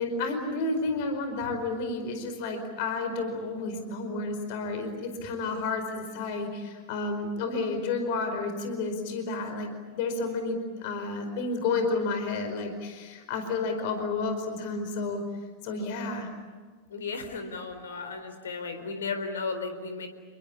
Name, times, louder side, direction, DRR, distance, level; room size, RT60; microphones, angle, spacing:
voice 1, 0.0-9.7 10.0-15.2 15.6-16.3, left 3 dB, 50° left, 6 dB, 4.8 m, -31 dB
voice 2, 16.9-20.1, left 4 dB, 65° left, 8 dB, 4.1 m, -34 dB
30.0 x 22.0 x 8.8 m, 1.5 s
figure-of-eight pair, 90°, 0 cm